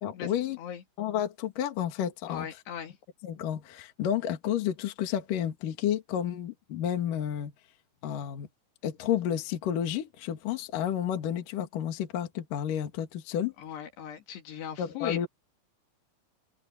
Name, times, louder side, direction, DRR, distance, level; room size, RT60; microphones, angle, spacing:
voice 1, 0.0-0.6 1.0-2.5 3.2-7.5 8.0-8.5 8.8-13.5 14.8-15.3, left 10 dB, 55° left, 3.2 m, -31 dB
voice 2, 2.3-3.0 13.6-15.3, left 9 dB, 75° left, 4.4 m, -38 dB
open air
omnidirectional pair, 5.0 m